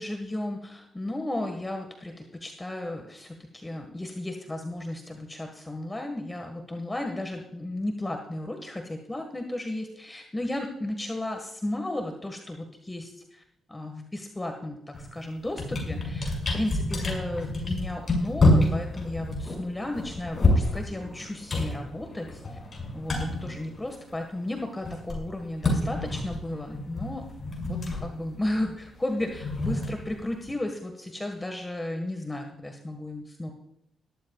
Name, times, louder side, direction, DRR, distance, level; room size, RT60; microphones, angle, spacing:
voice 1, 0.0-13.4 13.7-14.8 15.1-22.6 22.9-27.2 27.6-33.5, left 1 dB, 20° left, 4 dB, 1.6 m, -34 dB
sound 1, 14.9-15.1 15.4-24.3 24.6-30.5, left 2 dB, 40° left, 5.9 m, -28 dB
19.0 x 13.5 x 2.4 m, 0.82 s
cardioid pair, 70°, 0 cm